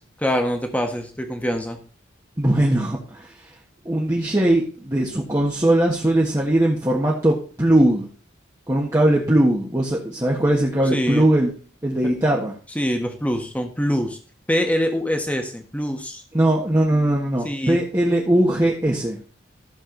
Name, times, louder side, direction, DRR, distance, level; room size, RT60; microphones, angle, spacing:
voice 1, 0.2-1.8 10.9-11.2 12.0-12.1 12.7-14.2 14.5-16.2 17.4-17.8, equal, 5° left, 4 dB, 1.5 m, -24 dB
voice 2, 2.4-3.3 3.8-8.1 8.7-11.5 11.8-12.5 16.3-19.2, right 1 dB, 15° right, -3 dB, 1.5 m, -20 dB
14.5 x 6.7 x 4.0 m, 0.40 s
head